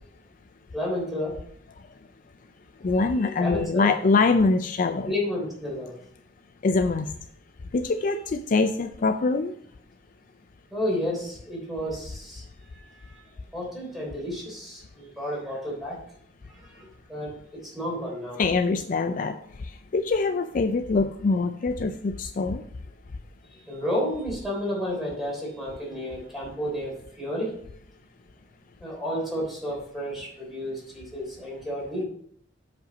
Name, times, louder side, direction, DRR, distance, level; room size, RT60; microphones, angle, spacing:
voice 1, 0.7-1.4 3.0-3.9 5.0-5.9 10.7-12.4 12.7-13.2 13.5-16.0 16.5-18.4 23.5-27.5 28.8-32.1, equal, ahead, -4 dB, 3.4 m, -31 dB
voice 2, 2.8-5.1 6.6-7.1 7.7-9.6 18.4-22.6, left 3 dB, 45° left, 9 dB, 0.4 m, -24 dB
7.7 x 5.3 x 5.0 m, 0.64 s
head